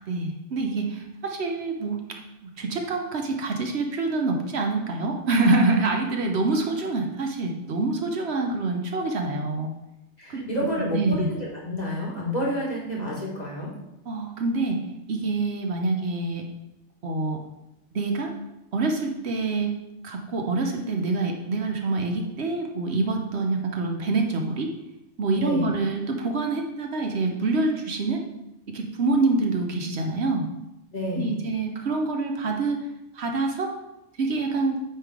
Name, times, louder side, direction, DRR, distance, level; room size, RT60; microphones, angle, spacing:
voice 1, 0.0-2.0 2.4-9.7 10.3-10.7 11.0-11.3 14.1-14.8 15.1-16.4 17.0-17.4 17.9-18.3 18.7-19.7 20.0-24.7 25.2-28.2 28.7-30.5 31.2-32.8 33.1-33.7 34.2-34.8, right 3 dB, 65° right, 2 dB, 1.1 m, -26 dB
voice 2, 10.2-13.7 25.3-25.7 30.9-31.4, left 1 dB, 35° left, -4 dB, 1.9 m, -29 dB
8.6 x 3.8 x 4.8 m, 0.92 s
omnidirectional pair, 1.2 m